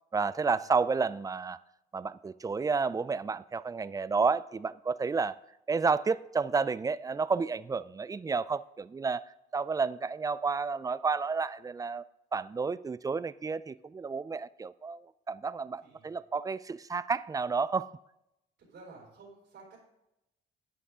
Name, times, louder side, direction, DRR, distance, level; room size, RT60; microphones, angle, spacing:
voice 1, 0.1-1.6 1.9-5.4 5.7-9.2 9.5-12.0 12.3-15.0 15.3-17.9, right 4 dB, 20° right, 0.3 m, -31 dB
voice 2, 15.8-16.2 18.6-19.8, right 3 dB, 70° right, 4.2 m, -52 dB
11.0 x 8.3 x 3.7 m
cardioid pair, 90°, 20 cm